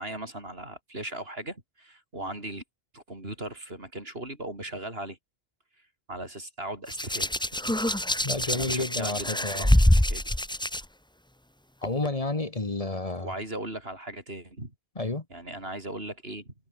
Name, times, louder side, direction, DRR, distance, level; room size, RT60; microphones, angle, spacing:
voice 1, 0.0-2.6 2.9-5.2 6.1-7.3 7.6-7.8 8.5-10.3 13.2-14.7 15.3-16.5, right 1 dB, 70° right, 6.3 m, -38 dB
Hands, 6.9-10.8 11.8-12.1, left 1 dB, 5° left, 0.8 m, -25 dB
voice 2, 8.2-9.7 11.8-13.3 15.0-15.3, left 2 dB, 35° left, 1.7 m, -30 dB
omnidirectional pair, 1.1 m